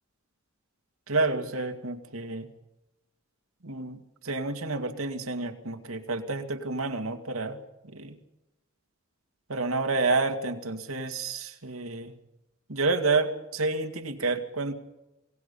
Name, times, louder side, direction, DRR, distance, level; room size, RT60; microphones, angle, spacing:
voice 1, 1.1-2.5 3.6-7.6 7.8-8.2 9.5-12.1 12.7-14.7, right 3 dB, 85° right, 6 dB, 2.3 m, -29 dB
28.0 x 18.5 x 5.6 m, 0.95 s
head